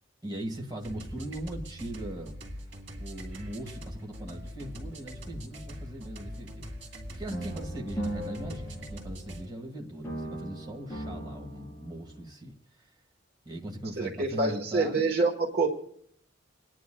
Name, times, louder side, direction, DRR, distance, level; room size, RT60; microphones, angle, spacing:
voice 1, 0.2-2.4 3.0-12.5 12.8-12.9 13.5-15.1, right 1 dB, 20° right, 1.8 m, -40 dB
sound 1, 0.8-9.4, equal, 75° right, 2.1 m, -42 dB
sound 2, 7.3-9.7 10.0-12.3, right 1 dB, 15° left, 3.7 m, -38 dB
voice 2, 14.0-15.7, right 3 dB, 55° right, 1.4 m, -26 dB
28.0 x 10.0 x 2.3 m
head